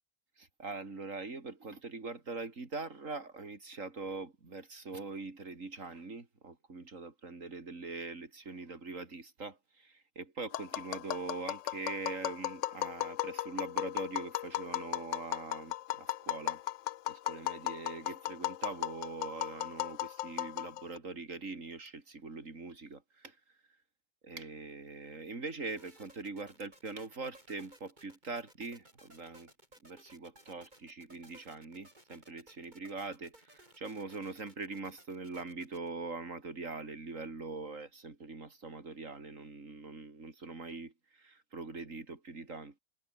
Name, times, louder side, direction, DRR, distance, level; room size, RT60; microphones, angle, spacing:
voice 1, 0.4-16.6 17.1-23.4 24.2-29.5 29.8-42.8, right 3 dB, 55° right, 3.7 m, -43 dB
Tap, 10.5-21.0, left 14 dB, 70° left, 0.7 m, -36 dB
sound 1, 25.8-35.9, right 1 dB, 25° right, 6.3 m, -60 dB
omnidirectional pair, 1.7 m